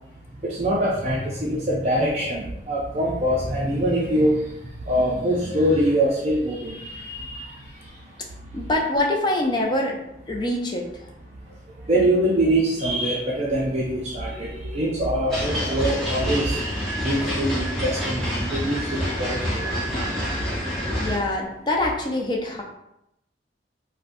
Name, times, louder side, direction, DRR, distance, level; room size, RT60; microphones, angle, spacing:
voice 1, 0.4-4.4 4.9-7.5 11.8-19.7, right 1 dB, 35° right, -5 dB, 0.4 m, -24 dB
voice 2, 8.5-10.0 10.3-10.9 21.0-22.6, left 1 dB, 25° left, 0 dB, 0.4 m, -24 dB
sound 1, 15.3-21.2, equal, ahead, 0.8 m, -27 dB
3.7 x 2.1 x 2.6 m, 0.84 s
head